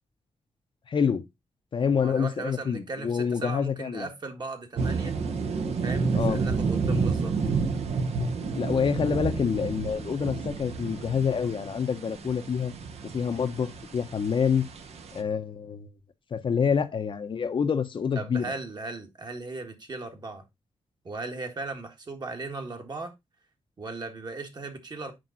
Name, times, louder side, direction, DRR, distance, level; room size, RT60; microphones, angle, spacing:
voice 1, 0.9-1.2 1.7-4.1 6.1-6.4 8.5-12.7 13.1-14.6 15.1-15.9 16.3-18.5, left 6 dB, 50° left, 0.9 m, -27 dB
voice 2, 1.9-5.2 5.8-7.4 18.1-20.4 21.0-23.1 23.8-25.1, right 3 dB, 40° right, 1.6 m, -37 dB
sound 1, 4.8-15.2, right 4 dB, 70° right, 1.3 m, -30 dB
7.8 x 5.3 x 3.9 m
wide cardioid pair, 135°, 11 cm